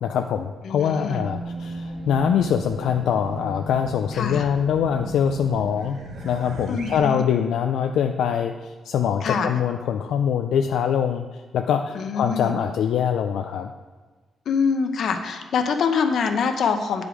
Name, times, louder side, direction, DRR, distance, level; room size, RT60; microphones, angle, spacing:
voice 1, 0.0-6.0 6.2-13.7, left 8 dB, 80° left, 5 dB, 0.4 m, -23 dB
voice 2, 0.6-1.2 4.1-4.5 6.7-7.2 9.2-9.5 11.9-12.5 14.5-17.1, left 5 dB, 60° left, 6 dB, 0.7 m, -24 dB
Race car auto racing / Alarm, 0.7-7.0, right 2 dB, 60° right, 1.2 m, -36 dB
9.3 x 5.1 x 4.9 m, 1.4 s
cardioid pair, 140°, 0 cm